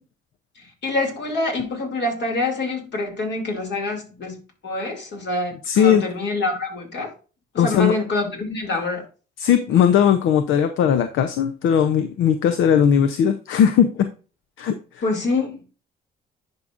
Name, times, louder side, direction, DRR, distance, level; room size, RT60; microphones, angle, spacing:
voice 1, 0.6-7.1 7.5-9.1 15.0-15.6, left 2 dB, 60° left, 2.7 m, -26 dB
voice 2, 5.7-6.0 7.6-7.9 9.4-14.1 14.6-14.7, left 8 dB, 80° left, 0.6 m, -18 dB
10.5 x 5.3 x 2.5 m
cardioid pair, 90°, 20 cm